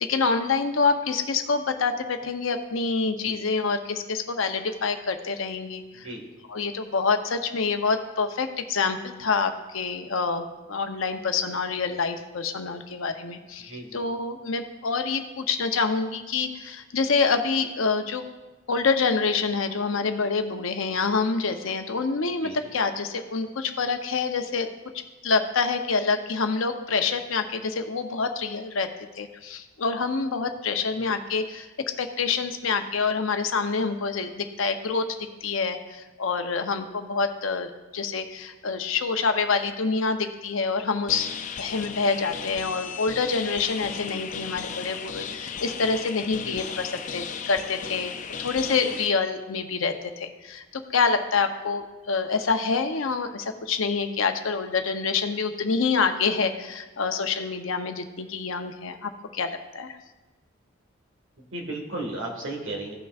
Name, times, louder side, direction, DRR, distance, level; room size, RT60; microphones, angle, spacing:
voice 1, 0.0-6.1 6.5-18.2 18.7-24.7 25.2-28.9 29.2-31.7 32.0-35.1 35.4-41.3 41.6-50.6 50.9-59.9, left 4 dB, 75° left, 7 dB, 0.7 m, -26 dB
voice 2, 13.7-14.0 22.4-22.6 44.1-44.2 46.4-46.6 61.5-62.9, right 2 dB, 65° right, 2 dB, 1.7 m, -34 dB
sound 1, 41.1-49.1, left 6 dB, 40° left, 0.4 m, -35 dB
15.5 x 6.0 x 2.4 m, 1.1 s
head